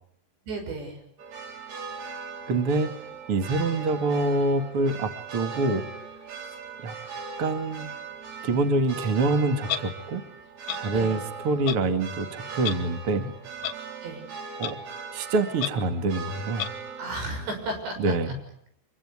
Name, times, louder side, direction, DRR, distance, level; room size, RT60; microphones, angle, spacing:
voice 1, 0.5-1.0 10.9-11.2 14.0-14.2 17.0-18.0, right 2 dB, 85° right, 4 dB, 8.8 m, -33 dB
sound 1, 1.2-17.7, right 5 dB, 65° right, 6.1 m, -39 dB
voice 2, 2.5-5.9 6.8-7.0 7.4-8.0 8.4-10.2 10.8-13.3 14.6-14.8 15.1-16.6 18.0-18.4, right 2 dB, 40° right, 8 dB, 2.3 m, -26 dB
Clock, 9.7-9.8 10.7-10.8 11.7-11.8 12.6-12.7 13.6-13.7 14.6-14.7 15.6-15.7 16.6-16.7, left 10 dB, 65° left, 2.3 m, -29 dB
26.0 x 23.5 x 9.7 m, 0.68 s
omnidirectional pair, 4.9 m